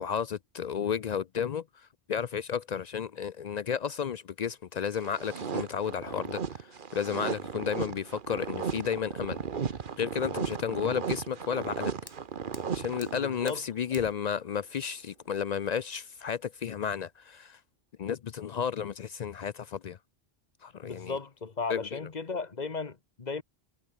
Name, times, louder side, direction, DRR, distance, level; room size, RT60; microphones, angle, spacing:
voice 1, 0.0-11.9 12.7-17.6 18.0-20.0 20.6-21.2 21.7-22.0, left 7 dB, 55° left, 0.4 m, -33 dB
sound 1, 5.0-13.6, right 6 dB, 50° right, 1.2 m, -35 dB
Fire, 11.4-17.4, left 1 dB, 20° left, 2.8 m, -54 dB
voice 2, 13.1-13.6 20.8-23.4, left 4 dB, 40° left, 1.3 m, -35 dB
omnidirectional pair, 1.1 m